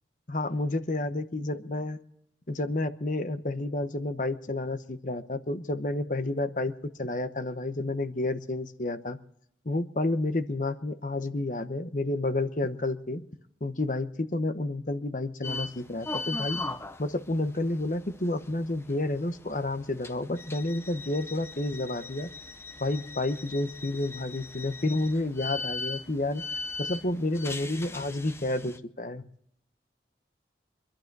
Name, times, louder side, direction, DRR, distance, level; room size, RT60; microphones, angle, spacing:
voice 1, 0.3-2.0 2.5-6.7 7.0-9.2 9.6-13.2 13.6-16.6 17.0-22.3 22.8-26.4 26.8-29.2, left 2 dB, 45° left, 10 dB, 1.0 m, -30 dB
sound 1, 15.4-28.8, left 3 dB, 15° left, 0.6 m, -39 dB
24.5 x 12.0 x 4.7 m, 0.69 s
head